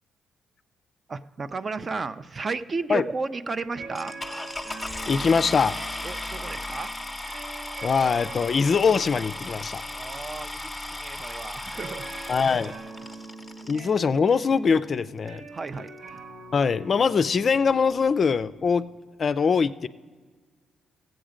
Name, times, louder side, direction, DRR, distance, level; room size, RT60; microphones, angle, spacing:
voice 1, 1.1-4.1 6.0-6.9 9.9-12.1 15.5-15.9, right 4 dB, 35° right, 13 dB, 0.4 m, -33 dB
sound 1, 3.7-18.8, right 3 dB, 85° right, 1.1 m, -44 dB
sound 2, 3.9-13.9 14.7-14.8 15.3-15.4 15.6-15.9, left 1 dB, 10° left, 0.9 m, -36 dB
voice 2, 5.1-5.8 7.8-9.8 12.3-12.7 13.7-15.5 16.5-18.9 19.2-19.9, left 5 dB, 45° left, 13 dB, 0.4 m, -22 dB
15.0 x 7.9 x 5.0 m, 1.5 s
cardioid pair, 90°, 0 cm